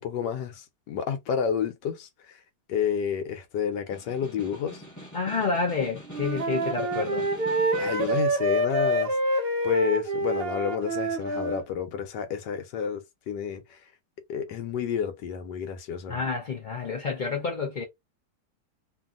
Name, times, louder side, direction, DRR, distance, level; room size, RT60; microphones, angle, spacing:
voice 1, 0.0-2.4 2.7-4.8 7.8-13.8 14.3-16.2, left 8 dB, 90° left, 1.3 m, -30 dB
Snare drum, 3.9-8.4, equal, 15° left, 0.9 m, -44 dB
voice 2, 5.1-7.3 16.1-17.8, left 4 dB, 70° left, 0.4 m, -29 dB
Wind instrument woodwind instrument, 6.1-11.6, right 2 dB, 75° right, 0.5 m, -27 dB
2.8 x 2.6 x 2.4 m
omnidirectional pair, 1.8 m